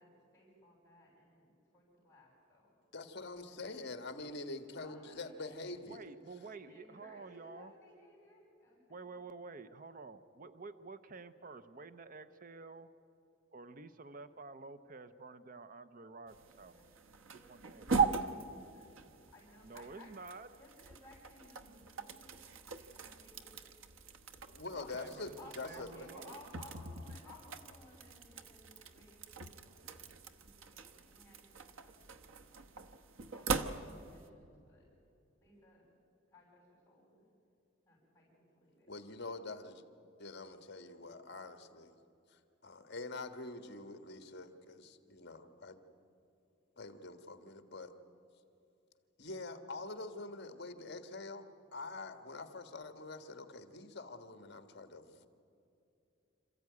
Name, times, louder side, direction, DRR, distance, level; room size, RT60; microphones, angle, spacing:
voice 1, 0.0-2.7 3.6-3.8 4.7-5.7 6.6-9.1 16.7-16.9 17.2-18.9 19.3-20.1 20.5-22.5 22.9-23.5 24.7-25.1 25.4-32.0 32.4-32.8 33.4-34.8 35.4-35.9 36.3-37.2 37.8-38.9, left 2 dB, 10° left, -7 dB, 6.7 m, -59 dB
voice 2, 2.9-6.1 24.5-25.9 38.9-39.8 40.2-42.0 42.3-45.8 46.8-47.9 49.2-51.5 51.7-55.3, left 3 dB, 55° left, 8 dB, 1.6 m, -45 dB
voice 3, 5.9-7.7 8.9-12.9 13.5-16.8 17.3-18.1 19.6-20.6 24.7-25.4 25.6-26.4, right 3 dB, 45° right, 11 dB, 0.7 m, -50 dB
sound 1, 16.3-34.3, right 5 dB, 85° right, 1.1 m, -41 dB
27.0 x 14.5 x 9.6 m, 2.7 s
head